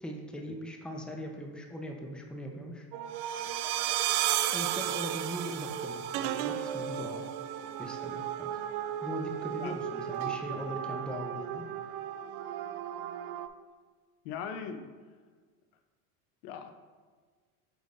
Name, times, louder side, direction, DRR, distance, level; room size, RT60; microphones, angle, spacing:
voice 1, 0.0-2.9 4.5-7.3 7.8-8.6 9.0-11.9, equal, ahead, 1 dB, 0.7 m, -40 dB
sound 1, 2.9-13.5, right 11 dB, 70° right, 0.5 m, -34 dB
voice 2, 14.2-14.9 16.4-16.7, left 7 dB, 70° left, 7 dB, 0.8 m, -39 dB
8.0 x 5.2 x 2.6 m, 1.5 s
hypercardioid pair, 85°, 45 cm